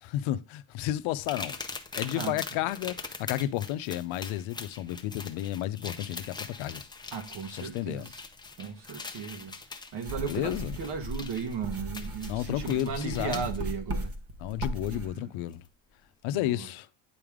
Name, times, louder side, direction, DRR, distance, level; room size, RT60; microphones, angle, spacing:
voice 1, 0.0-1.6 1.9-6.8 7.5-8.1 10.2-10.8 12.3-13.5 14.4-15.6 16.2-16.9, left 14 dB, 80° left, 0.7 m, -32 dB
sound 1, 1.2-13.6 14.9-15.0 15.5-15.7, left 4 dB, 10° left, 0.6 m, -42 dB
voice 2, 7.1-8.2 8.6-9.5 9.9-14.1 14.9-15.3 16.3-16.7, right 6 dB, 60° right, 1.6 m, -36 dB
sound 2, 10.0-15.1, right 1 dB, 30° right, 1.1 m, -37 dB
9.7 x 3.4 x 3.5 m
cardioid pair, 135°, 47 cm